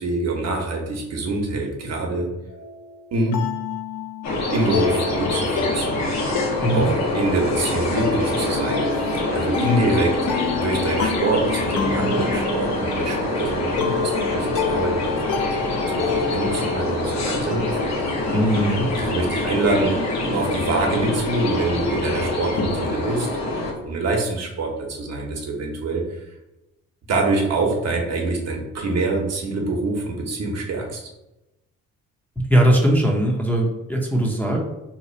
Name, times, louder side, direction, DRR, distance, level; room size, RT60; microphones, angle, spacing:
voice 1, 0.0-2.3 3.1-3.4 4.5-6.2 6.7-10.2 10.5-18.3 18.9-23.3 23.8-26.0 27.1-31.0, right 2 dB, 60° right, 0 dB, 0.9 m, -25 dB
sound 1, 2.5-17.2, left 6 dB, 85° left, 0.5 m, -29 dB
sound 2, 4.2-23.7, left 2 dB, 60° left, 0.9 m, -25 dB
voice 2, 18.3-18.9 32.4-34.6, right 1 dB, 5° left, -2 dB, 0.6 m, -19 dB
2.9 x 2.4 x 4.0 m, 0.96 s
cardioid pair, 90°, 30 cm